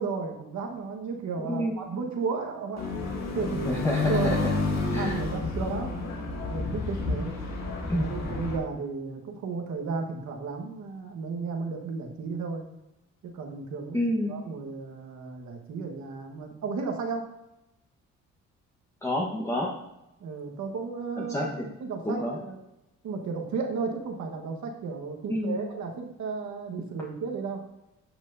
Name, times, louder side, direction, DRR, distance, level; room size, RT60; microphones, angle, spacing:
voice 1, 0.0-2.8 3.3-3.6 4.1-4.4 4.9-5.9 6.4-7.3 7.9-12.6 13.2-14.0 14.3-17.3 20.2-21.5 21.8-22.6 23.0-27.6, right 4 dB, 70° right, 3 dB, 1.5 m, -33 dB
voice 2, 1.4-1.8 3.6-4.5 4.9-5.2 7.9-8.1 13.9-14.4 19.0-19.7 21.2-21.6 22.0-22.4 25.3-25.6, equal, 10° left, -3 dB, 1.3 m, -29 dB
sound 1, 2.8-8.6, left 3 dB, 60° left, 2.1 m, -30 dB
10.5 x 6.3 x 2.7 m, 0.90 s
cardioid pair, 90°, 30 cm